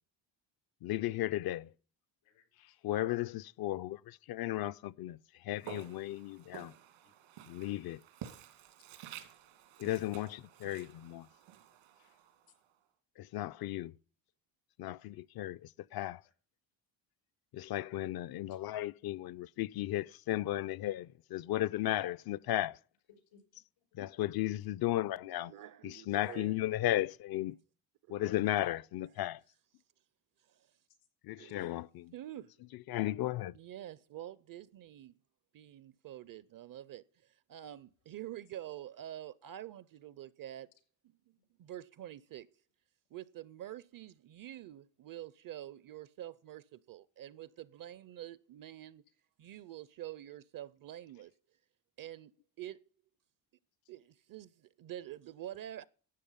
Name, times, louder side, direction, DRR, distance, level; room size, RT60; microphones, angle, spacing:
voice 1, 0.8-1.7 2.8-6.7 7.5-8.0 9.8-11.3 13.2-13.9 14.8-16.2 17.5-22.8 23.9-25.5 25.8-27.6 28.1-29.4 31.2-32.1 32.9-33.6, left 14 dB, 55° left, 0.5 m, -35 dB
voice 2, 2.2-2.8 7.0-7.3 9.2-9.3 16.2-16.3 18.5-18.6 23.1-23.9 41.4-41.5 53.8-53.9, left 6 dB, 80° left, 5.3 m, -67 dB
Walk footsteps, 5.6-12.7, right 10 dB, 90° right, 2.3 m, -52 dB
voice 3, 25.5-26.5 28.1-28.4 30.4-30.7 31.4-31.8 32.1-32.5 33.5-35.1 35.5-40.7 41.3-42.5 43.1-49.0 49.4-51.3 52.0-52.3 52.6-52.8 53.9-55.9, right 12 dB, 45° right, 0.5 m, -47 dB
12.5 x 8.5 x 5.5 m
cardioid pair, 120°, 46 cm